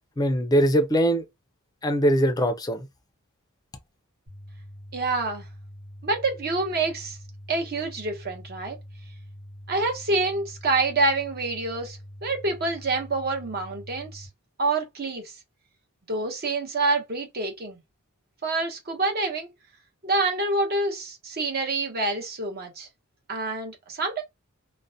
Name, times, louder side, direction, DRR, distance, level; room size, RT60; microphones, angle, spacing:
voice 1, 0.2-1.2 1.8-2.9, right 1 dB, 15° left, 0.4 m, -21 dB
sound 1, 4.3-14.3, equal, 80° right, 0.9 m, -44 dB
voice 2, 4.9-5.4 6.0-7.2 7.5-8.8 9.7-14.3 14.6-15.3 16.1-17.8 18.4-19.5 20.0-22.9 23.3-24.2, right 3 dB, 45° right, 0.8 m, -27 dB
2.3 x 2.1 x 2.6 m
head